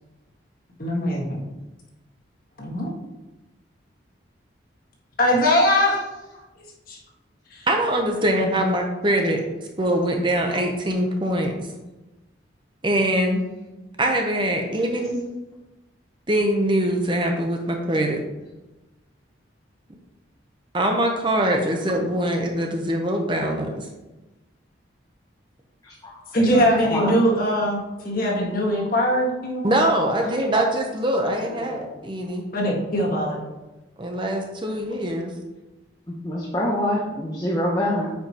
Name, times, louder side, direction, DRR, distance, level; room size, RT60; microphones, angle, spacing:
voice 1, 0.8-1.4 2.6-2.9 5.2-6.0 6.9-7.0 7.5-7.7 26.3-29.6 31.6-31.8 32.5-33.4, equal, 50° left, -2 dB, 1.6 m, -21 dB
voice 2, 7.7-9.4 9.8-11.5 12.8-13.4 14.0-15.2 16.3-18.2 20.7-23.9 29.6-32.4 34.0-35.3, right 1 dB, 25° right, 2 dB, 0.8 m, -23 dB
voice 3, 25.8-27.2 36.1-38.1, left 1 dB, 20° left, -5 dB, 0.8 m, -26 dB
9.0 x 5.1 x 2.9 m, 1.0 s
head